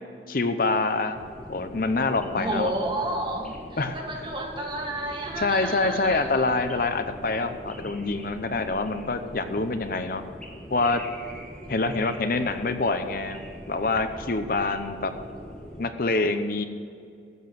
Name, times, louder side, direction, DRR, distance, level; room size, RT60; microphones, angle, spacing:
voice 1, 0.3-1.2 1.5-2.7 3.8-4.1 5.4-10.2 10.7-11.0 11.7-13.4 13.7-15.1 15.8-16.6, left 3 dB, 50° left, 9 dB, 0.7 m, -26 dB
sound 1, 1.1-15.8, equal, 5° left, 1.6 m, -42 dB
voice 2, 2.4-6.4, right 1 dB, 30° right, 1 dB, 1.8 m, -31 dB
13.5 x 7.9 x 7.5 m, 2.4 s
head